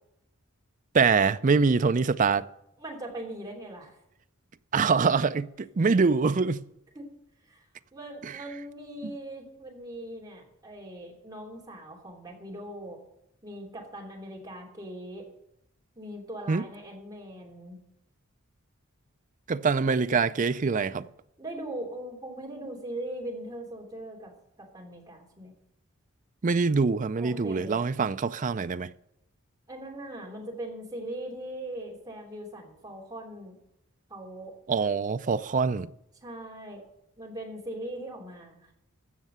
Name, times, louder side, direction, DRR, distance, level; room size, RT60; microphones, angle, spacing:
voice 1, 0.9-2.5 4.7-6.6 8.2-8.3 16.5-16.6 19.5-21.1 26.4-28.9 34.7-35.9, right 4 dB, 40° right, 0.4 m, -24 dB
voice 2, 2.8-4.0 6.9-7.1 7.5-7.6 7.9-13.0 13.4-15.2 15.9-17.8 21.4-24.3 24.6-25.5 27.2-27.8 29.7-33.5 34.1-34.6 36.2-36.8 37.2-38.7, right 1 dB, 20° right, 3.2 m, -40 dB
15.0 x 6.6 x 8.0 m
head